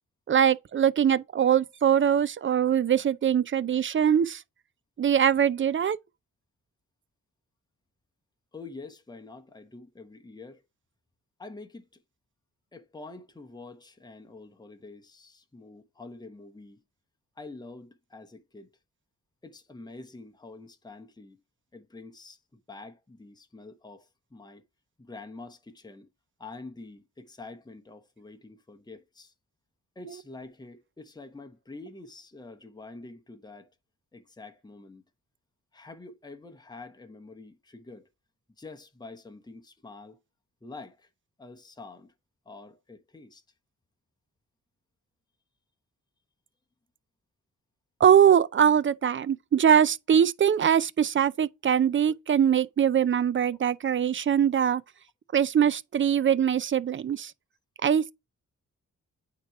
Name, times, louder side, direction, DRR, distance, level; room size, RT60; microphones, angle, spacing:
voice 1, 0.3-4.4 5.0-6.0 48.0-54.8 55.3-57.3 57.8-58.1, right 8 dB, 40° right, 0.4 m, -22 dB
voice 2, 8.5-10.6 11.4-12.0 12.7-16.8 17.4-18.7 19.4-21.4 21.7-24.6 25.0-26.1 26.4-29.3 29.9-33.7 34.1-35.0 35.7-38.1 38.6-40.2 40.6-41.1 41.4-42.1 42.4-43.4, left 3 dB, 10° left, 0.9 m, -46 dB
8.7 x 3.0 x 4.6 m
cardioid pair, 80°, 33 cm